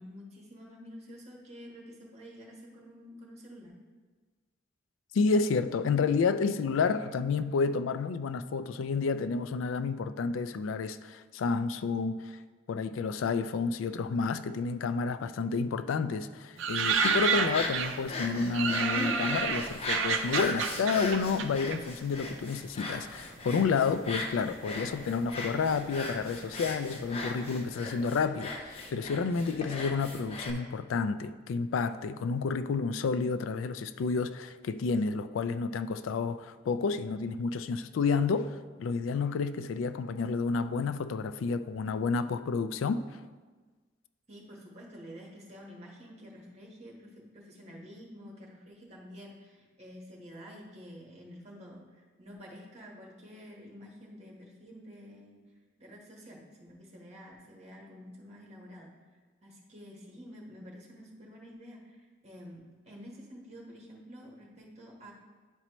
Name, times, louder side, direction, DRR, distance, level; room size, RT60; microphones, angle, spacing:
voice 1, 0.0-3.7 44.3-55.4 55.8-58.9 59.4-65.1, equal, 35° right, 1.4 m, -49 dB
voice 2, 5.1-12.4 12.7-43.0, left 4 dB, 85° left, 0.3 m, -30 dB
sound 1, 16.6-18.1 18.5-22.4 22.7-23.5 24.2-24.7 25.0-25.1 25.3-27.6 27.9-28.1, right 6 dB, 75° right, 0.5 m, -31 dB
sound 2, 16.8-30.5, left 2 dB, 30° left, 0.7 m, -38 dB
11.0 x 4.2 x 3.0 m
head